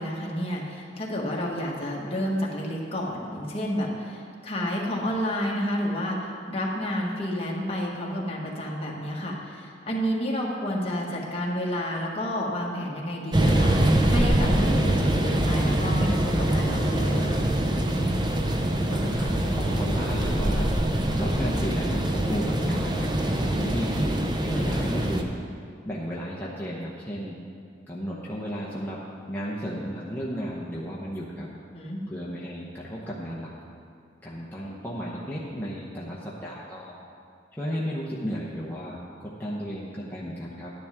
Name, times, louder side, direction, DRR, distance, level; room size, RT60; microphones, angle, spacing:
voice 1, 0.0-13.8 14.1-17.4 31.7-32.0, equal, 35° left, -3 dB, 1.5 m, -30 dB
sound 1, 13.3-25.2, right 1 dB, 25° right, 0.7 m, -24 dB
voice 2, 18.5-20.7 21.2-25.3 25.8-27.4 27.9-31.5 32.1-33.5 34.2-37.0 37.5-40.7, equal, 10° left, -7 dB, 0.9 m, -33 dB
12.0 x 10.0 x 3.6 m, 2.3 s
head